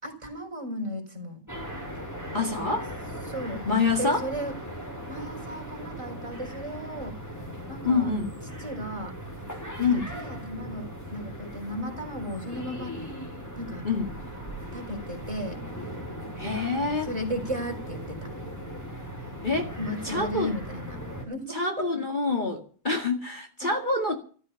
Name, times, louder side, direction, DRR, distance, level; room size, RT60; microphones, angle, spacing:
voice 1, 0.0-1.4 3.2-3.7 4.0-4.5 5.1-7.2 7.7-8.1 8.6-9.2 9.8-13.1 13.6-13.9 14.7-15.6 17.0-18.3 19.8-21.0 21.2-21.9 23.6-23.8, equal, 20° right, 4.9 m, -35 dB
sound 1, 1.5-21.3, equal, 10° left, 6.3 m, -38 dB
voice 2, 2.3-2.9 3.7-4.2 7.8-8.3 9.8-10.1 13.8-14.1 16.4-17.1 19.4-19.8 20.0-20.5 21.5-24.2, left 3 dB, 35° left, 2.3 m, -26 dB
14.5 x 14.5 x 5.9 m
omnidirectional pair, 1.5 m